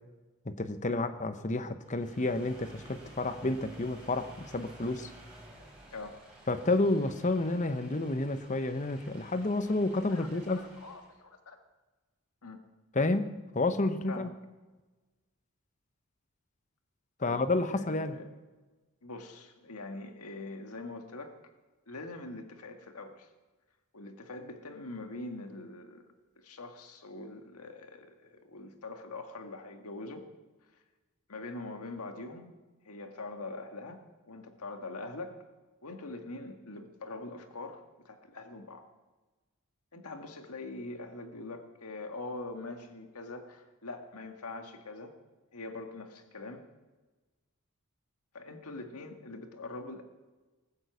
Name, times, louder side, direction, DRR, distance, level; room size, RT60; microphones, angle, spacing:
voice 1, 0.5-5.1 6.5-10.7 12.9-14.3 17.2-18.1, left 2 dB, 35° left, 10 dB, 0.9 m, -30 dB
sound 1, 1.8-11.1, right 1 dB, 5° right, 5.4 m, -53 dB
voice 2, 5.9-6.2 10.1-11.6 12.4-12.6 14.1-14.3 17.2-17.4 17.7-18.3 19.0-21.4 21.9-23.3 23.9-26.1 26.4-30.3 31.3-32.5 32.8-35.4 35.8-38.9 39.9-45.1 45.5-46.6 48.3-50.0, left 2 dB, 90° left, 5 dB, 1.7 m, -43 dB
19.0 x 8.5 x 8.1 m, 1.2 s
head